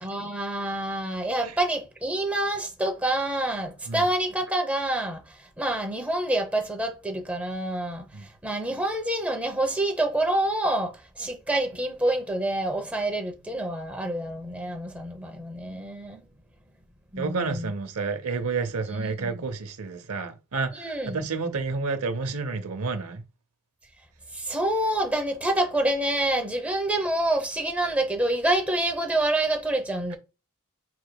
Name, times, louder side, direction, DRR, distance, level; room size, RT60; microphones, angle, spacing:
voice 1, 0.0-8.1 8.4-16.2 17.1-17.7 18.9-19.3 20.7-21.2 24.3-30.2, right 1 dB, 5° right, 0.7 m, -27 dB
voice 2, 17.2-23.2, right 4 dB, 70° right, 0.7 m, -30 dB
4.8 x 3.8 x 2.2 m
head